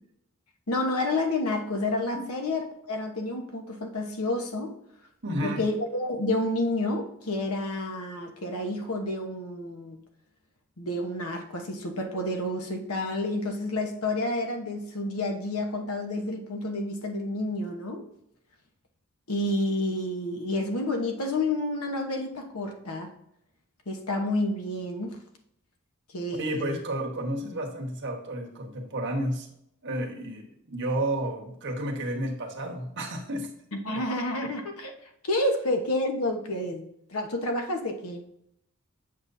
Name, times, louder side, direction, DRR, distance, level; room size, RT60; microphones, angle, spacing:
voice 1, 0.7-4.7 5.4-10.0 10.8-18.1 19.3-23.1 23.9-25.2 26.1-26.8 33.8-34.9 35.3-38.2, left 1 dB, 75° left, 4 dB, 1.2 m, -29 dB
voice 2, 5.2-5.6 26.3-29.5 29.8-33.5 33.9-34.0, right 1 dB, 55° right, 1 dB, 1.4 m, -31 dB
8.0 x 6.7 x 2.7 m, 0.76 s
head